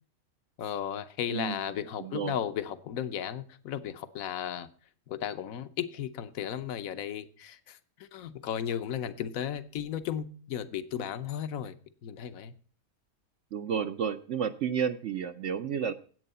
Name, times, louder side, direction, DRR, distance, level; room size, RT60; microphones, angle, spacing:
voice 1, 0.6-4.7 5.1-11.7 12.0-12.5, left 9 dB, 70° left, 11 dB, 1.2 m, -35 dB
voice 2, 2.0-2.4 13.5-15.9, right 7 dB, 60° right, 8 dB, 0.9 m, -31 dB
11.0 x 8.5 x 5.5 m, 0.43 s
omnidirectional pair, 1.5 m